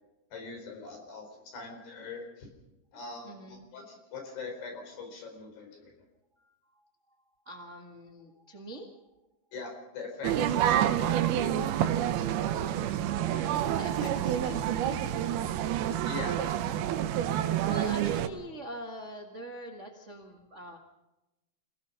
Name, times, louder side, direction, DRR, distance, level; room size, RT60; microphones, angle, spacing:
voice 1, 0.3-2.5 2.9-5.9 9.5-11.1 16.1-16.4, left 4 dB, 75° left, 3 dB, 6.5 m, -42 dB
voice 2, 3.2-3.7 6.4-6.5 7.4-8.9 13.2-15.4 16.4-16.5 17.3-20.8, equal, 40° right, 2 dB, 0.9 m, -44 dB
sound 1, 10.2-18.3, right 11 dB, 75° right, 2.7 m, -28 dB
28.0 x 17.5 x 5.5 m, 0.99 s
omnidirectional pair, 4.7 m